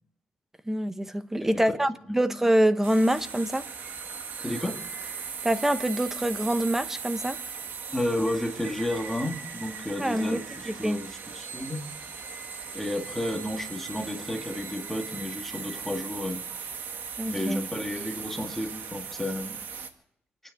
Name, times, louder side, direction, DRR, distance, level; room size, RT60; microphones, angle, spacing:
voice 1, 0.7-3.7 5.4-7.4 10.0-10.4 10.7-11.0 17.2-17.6, right 1 dB, 10° right, 0.9 m, -25 dB
sound 1, 2.8-19.9, right 6 dB, 70° right, 1.9 m, -38 dB
voice 2, 4.4-4.8 7.9-11.8 12.7-16.4 17.3-19.6, left 1 dB, 5° left, 2.0 m, -32 dB
28.5 x 9.9 x 4.7 m
cardioid pair, 110°, 4 cm